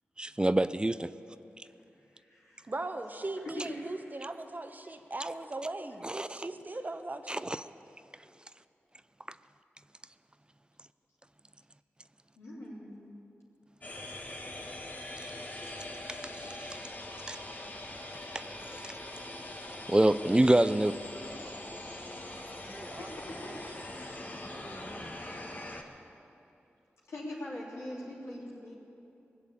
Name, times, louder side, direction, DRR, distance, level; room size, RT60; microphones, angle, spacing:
voice 1, 0.2-1.1 6.2-6.3 7.3-7.6 17.3-17.4 18.3-18.4 19.9-20.9, right 1 dB, 20° right, 14 dB, 0.5 m, -25 dB
voice 2, 2.1-2.7 3.6-3.9 12.4-13.0 23.0-23.8 27.1-28.7, left 1 dB, 90° left, -7 dB, 3.4 m, -43 dB
voice 3, 2.7-7.6 22.6-23.9 24.5-25.2, right 2 dB, 40° right, 7 dB, 1.2 m, -40 dB
sound 1, 13.8-25.8, left 1 dB, 40° left, 1.6 m, -42 dB
19.5 x 7.1 x 8.6 m, 2.8 s
cardioid pair, 40°, 5 cm